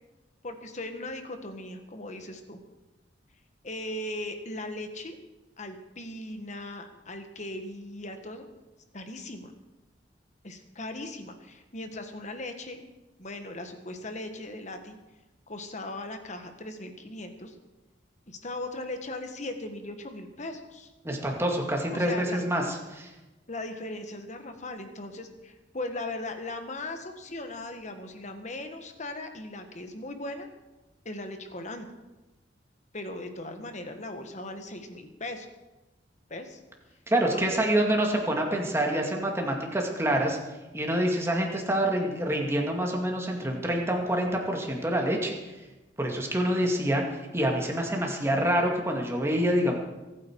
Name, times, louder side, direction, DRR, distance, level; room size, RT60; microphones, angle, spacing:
voice 1, 0.4-2.6 3.6-5.2 5.6-8.5 8.9-9.5 10.4-12.8 13.2-15.0 15.5-17.5 18.3-20.9 21.9-22.4 23.5-30.5 31.0-31.9 32.9-35.5 36.3-36.6 37.3-37.6, left 2 dB, 40° left, 7 dB, 1.5 m, -38 dB
voice 2, 21.0-23.1 37.1-40.4 40.7-45.3 46.0-47.0 47.3-49.8, right 1 dB, 15° right, 1 dB, 2.2 m, -26 dB
23.0 x 9.4 x 4.7 m, 1.1 s
head